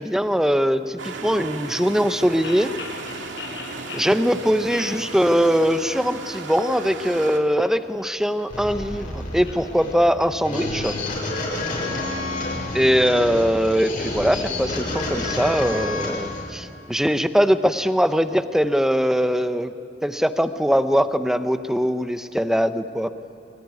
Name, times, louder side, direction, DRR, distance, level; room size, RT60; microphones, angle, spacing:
voice 1, 0.0-2.7 3.9-10.9 12.7-19.7 20.0-23.1, equal, 5° right, 10 dB, 0.8 m, -21 dB
sound 1, 1.0-7.4, right 3 dB, 80° right, 2.3 m, -35 dB
sound 2, 2.4-4.2 4.7-5.7 6.0-6.5 7.0-8.9 9.3-11.5, left 4 dB, 70° left, 5.4 m, -41 dB
sound 3, 8.5-16.4, left 2 dB, 50° left, 6.0 m, -29 dB
25.5 x 22.5 x 9.7 m, 2.7 s
head